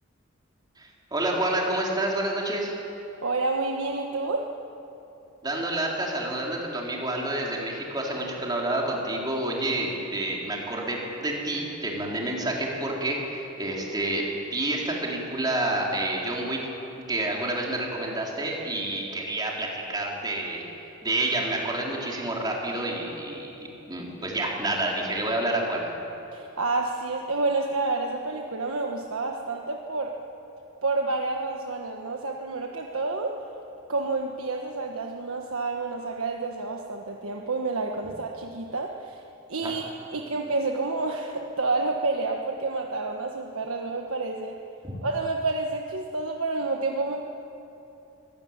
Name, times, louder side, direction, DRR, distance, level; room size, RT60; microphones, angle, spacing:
voice 1, 0.8-2.7 5.4-14.2 14.5-16.6 17.1-20.6 21.0-23.5 23.9-25.9 39.6-39.7 44.8-44.9, right 1 dB, 20° right, -2 dB, 3.8 m, -29 dB
voice 2, 3.2-4.5 26.3-30.1 30.8-33.4 33.9-39.2 39.5-39.8 40.1-44.6 45.0-47.2, right 3 dB, 85° right, 2 dB, 1.4 m, -29 dB
24.0 x 17.5 x 8.9 m, 2.9 s
head